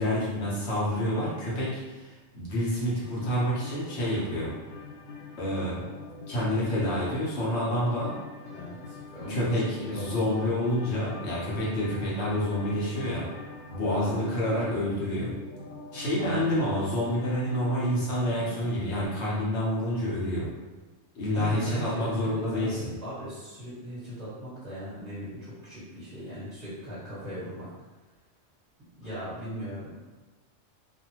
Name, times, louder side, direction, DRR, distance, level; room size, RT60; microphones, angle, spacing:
voice 1, 0.0-4.5 5.4-5.8 6.3-8.1 9.3-13.3 13.7-15.3 15.9-20.5 21.1-22.9, equal, 60° left, -6 dB, 1.1 m, -28 dB
sound 1, 3.0-19.1, left 4 dB, 80° left, 0.4 m, -44 dB
voice 2, 8.5-10.3 13.8-14.3 16.2-16.7 21.3-27.7 29.0-30.0, right 1 dB, 10° right, -12 dB, 1.2 m, -39 dB
2.5 x 2.5 x 2.8 m, 1.2 s
omnidirectional pair, 1.3 m